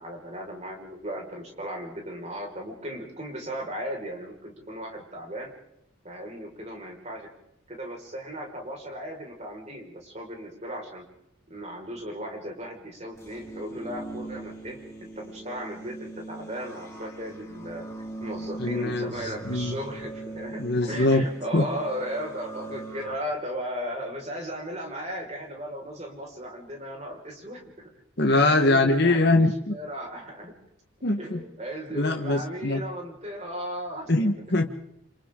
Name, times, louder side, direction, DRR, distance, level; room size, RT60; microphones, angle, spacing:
voice 1, 0.0-5.5 6.0-7.3 7.7-11.0 11.5-14.8 15.2-17.9 18.2-20.6 20.9-27.9 28.3-29.2 29.7-30.5 31.2-34.3, equal, 35° right, 1 dB, 5.3 m, -36 dB
sound 1, 13.1-23.2, right 2 dB, 15° left, 5.1 m, -40 dB
voice 2, 18.6-19.8 20.6-21.2 21.5-21.7 28.2-29.7 31.0-31.4 31.9-32.8 34.1-34.8, left 2 dB, 55° left, 3 dB, 1.4 m, -23 dB
28.5 x 27.0 x 3.8 m, 0.79 s
head